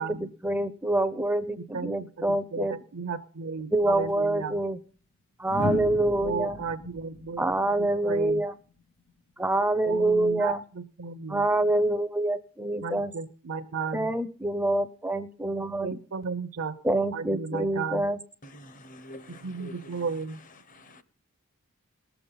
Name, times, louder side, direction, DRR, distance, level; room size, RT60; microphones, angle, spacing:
voice 1, 0.0-2.7 3.7-4.8 5.4-6.6 7.4-8.5 9.4-10.6 11.3-13.1 13.9-16.0 16.8-18.2, right 1 dB, 10° right, 0.5 m, -26 dB
voice 2, 2.5-4.6 6.2-7.4 7.8-8.4 9.8-11.5 12.8-14.1 15.8-16.7 17.1-18.0 19.3-20.4, right 5 dB, 65° right, 0.6 m, -34 dB
sound 1, 3.9-4.1 5.4-8.5 10.1-10.4, left 2 dB, 65° left, 2.4 m, -35 dB
voice 3, 18.4-20.0 20.7-21.0, left 1 dB, 35° left, 0.9 m, -47 dB
18.5 x 6.9 x 5.5 m
head